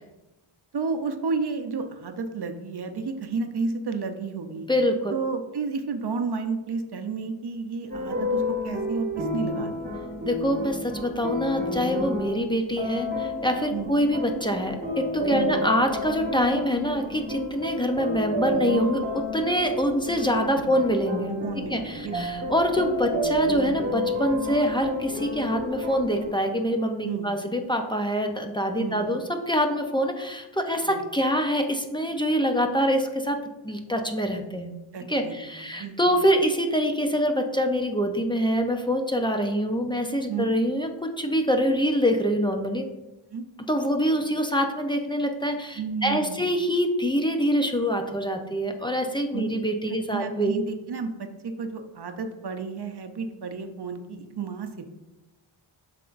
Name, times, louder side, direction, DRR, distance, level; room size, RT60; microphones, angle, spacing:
voice 1, 0.7-4.7 5.1-9.7 13.7-13.9 15.3-15.6 20.6-20.8 21.4-22.2 27.0-27.3 28.8-29.0 30.8-31.0 34.9-36.1 40.3-40.4 43.3-43.4 45.8-46.4 49.3-49.5 49.9-54.9, right 4 dB, 55° right, 6 dB, 0.7 m, -32 dB
voice 2, 4.7-5.2 10.2-21.3 21.7-33.4 33.6-34.7 35.1-42.9 43.7-50.5, equal, 10° left, 4 dB, 0.5 m, -25 dB
sound 1, 7.9-26.3, equal, 20° right, 1.2 m, -30 dB
7.6 x 5.8 x 2.5 m, 1.0 s
wide cardioid pair, 110°, 49 cm